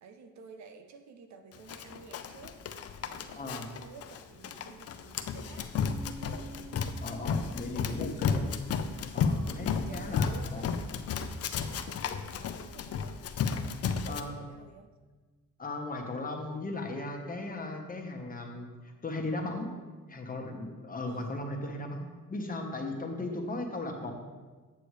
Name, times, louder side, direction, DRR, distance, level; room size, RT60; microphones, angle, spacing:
voice 1, 0.0-2.6 3.0-5.7 6.0-6.6 7.9-8.1 9.5-10.8 11.8-13.2 13.7-14.9 21.1-21.4 23.2-23.6, right 5 dB, 65° right, 6 dB, 0.8 m, -51 dB
Run, 1.7-14.2, left 6 dB, 55° left, 0.6 m, -33 dB
voice 2, 3.3-3.7 7.0-8.4 9.1-10.7 13.8-14.4 15.6-19.7 20.1-24.1, left 2 dB, 30° left, 2 dB, 1.2 m, -37 dB
Bass guitar, 5.7-9.6, right 2 dB, ahead, 1.5 m, -50 dB
8.3 x 6.8 x 3.2 m, 1.4 s
cardioid pair, 90°, 30 cm